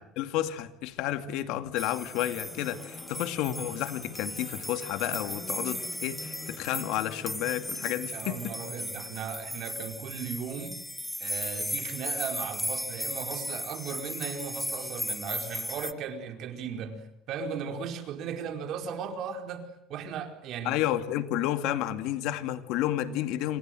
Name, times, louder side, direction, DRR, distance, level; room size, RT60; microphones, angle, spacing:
voice 1, 0.2-8.5 20.6-23.6, left 13 dB, 80° left, 2.4 m, -31 dB
sound 1, 1.8-15.9, left 1 dB, 5° left, 1.3 m, -36 dB
sound 2, 1.9-9.3, left 4 dB, 30° left, 6.7 m, -47 dB
voice 2, 8.1-10.8 11.2-20.8, right 6 dB, 65° right, 4.7 m, -37 dB
27.5 x 26.5 x 7.9 m
cardioid pair, 110°, 0 cm